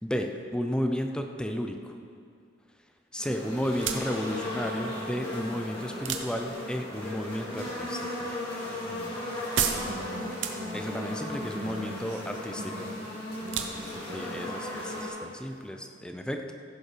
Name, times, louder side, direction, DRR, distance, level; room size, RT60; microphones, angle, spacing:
voice 1, 0.0-1.9 3.1-8.3 10.7-12.7 14.1-16.5, equal, 5° left, 4 dB, 0.6 m, -33 dB
sound 1, 3.2-15.1, left 1 dB, 30° left, 3.3 m, -36 dB
sound 2, 3.6-15.7, right 8 dB, 85° right, 0.8 m, -38 dB
voice 2, 8.6-9.3 9.6-10.3 10.6-10.8 11.1-13.0 13.4-14.4, right 1 dB, 70° right, -1 dB, 1.7 m, -43 dB
15.5 x 7.0 x 5.1 m, 2.4 s
head